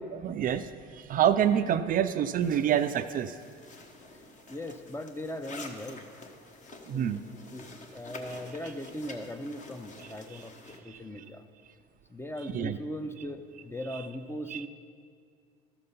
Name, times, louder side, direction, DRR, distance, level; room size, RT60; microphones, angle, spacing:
voice 1, 0.2-0.7 1.0-3.3 6.9-7.2 10.9-11.0 12.5-12.8 14.5-14.7, right 9 dB, 45° right, 10 dB, 0.4 m, -26 dB
sound 1, 2.4-10.8, left 2 dB, 40° left, 1.1 m, -48 dB
voice 2, 4.5-6.1 6.9-11.4 12.1-14.7, equal, 10° left, 9 dB, 0.6 m, -39 dB
12.5 x 6.8 x 5.4 m, 2.2 s
supercardioid pair, 95°, 20 cm